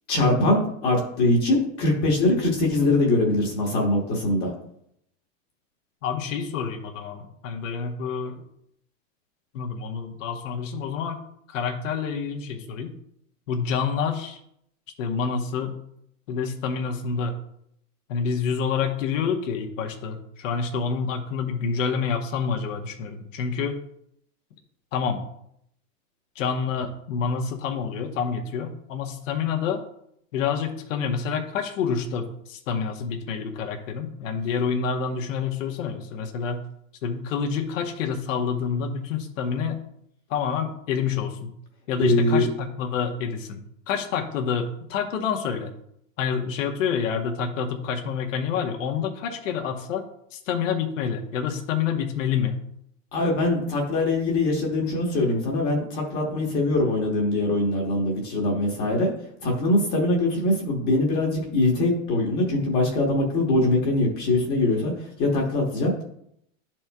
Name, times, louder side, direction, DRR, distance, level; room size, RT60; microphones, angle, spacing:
voice 1, 0.1-4.5 42.0-42.5 53.1-59.1 59.4-65.9, left 2 dB, 25° left, -1 dB, 1.0 m, -22 dB
voice 2, 6.0-8.4 9.5-11.2 11.5-12.9 13.5-14.4 15.0-15.8 16.3-17.4 18.1-23.8 24.9-25.2 26.3-29.8 30.3-36.6 37.0-39.8 40.3-41.5 41.9-45.7 46.2-50.0 50.3-52.6, left 6 dB, 80° left, 3 dB, 1.1 m, -28 dB
12.0 x 4.4 x 2.3 m, 0.72 s
supercardioid pair, 175°, 38 cm